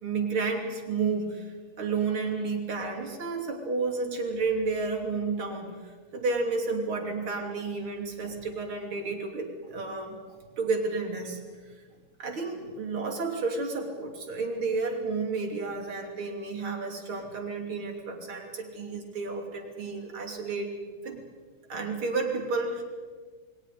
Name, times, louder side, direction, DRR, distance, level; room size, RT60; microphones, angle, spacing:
voice 1, 0.0-11.4 11.6-11.7 12.2-20.7 21.0-21.2 21.7-22.8, right 4 dB, 45° right, 0 dB, 3.6 m, -31 dB
28.5 x 22.0 x 5.0 m, 1.5 s
omnidirectional pair, 3.4 m